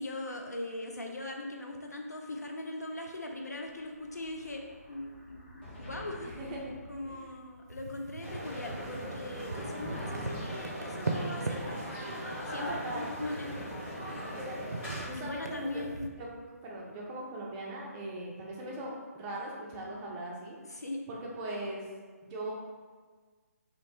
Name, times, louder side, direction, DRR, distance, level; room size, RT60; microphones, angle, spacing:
voice 1, 0.0-6.3 6.9-11.8 12.4-13.7 15.2-16.1 20.7-21.0, left 2 dB, 80° left, 2 dB, 0.4 m, -40 dB
Explosion, 3.2-7.8, equal, 40° left, 0.9 m, -51 dB
voice 2, 6.2-6.7 7.1-7.3 9.5-10.4 12.6-13.0 14.3-15.8 16.2-16.3 16.6-20.6 21.1-21.8 22.2-22.5, right 1 dB, 15° right, -3 dB, 0.4 m, -40 dB
sound 1, 7.7-16.1, right 3 dB, 85° right, 0.4 m, -41 dB
sound 2, 8.2-15.1, equal, 10° left, 0.9 m, -39 dB
2.9 x 2.1 x 4.0 m, 1.5 s
figure-of-eight pair, 145°, 9 cm